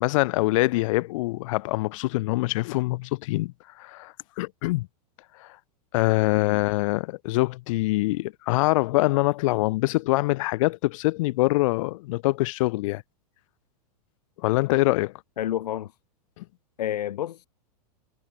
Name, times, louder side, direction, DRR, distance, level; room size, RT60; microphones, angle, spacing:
voice 1, 0.0-4.9 5.4-5.5 5.9-13.0 14.4-15.1 16.4-16.5, left 20 dB, 55° left, 0.6 m, -24 dB
voice 2, 15.4-15.9 16.8-17.5, left 12 dB, 85° left, 1.2 m, -30 dB
hypercardioid pair, 140°, 20 cm